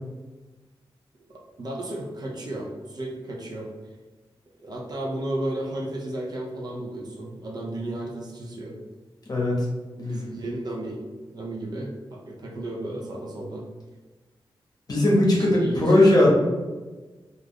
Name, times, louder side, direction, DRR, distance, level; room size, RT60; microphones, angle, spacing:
voice 1, 1.3-3.7 4.6-8.8 10.0-11.0 11.3-13.7 15.2-16.3, right 1 dB, 45° right, -1 dB, 0.6 m, -33 dB
voice 2, 9.3-9.7 14.9-16.3, left 1 dB, 45° left, -3 dB, 0.8 m, -18 dB
2.4 x 2.3 x 3.4 m, 1.3 s
wide cardioid pair, 85°, 9 cm